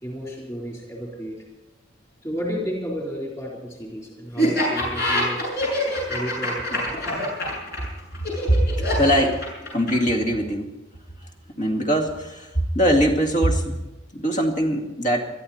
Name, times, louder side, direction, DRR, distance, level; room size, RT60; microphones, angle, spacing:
voice 1, 0.0-1.4 2.2-5.4 6.1-7.0, equal, 15° left, -3 dB, 4.1 m, -32 dB
Laughter, 4.4-10.1, left 1 dB, 60° left, 7.5 m, -25 dB
voice 2, 8.5-9.4 9.7-10.7 11.6-13.8 14.1-15.2, equal, 40° left, 2 dB, 2.3 m, -21 dB
22.5 x 13.5 x 4.3 m, 1.0 s
head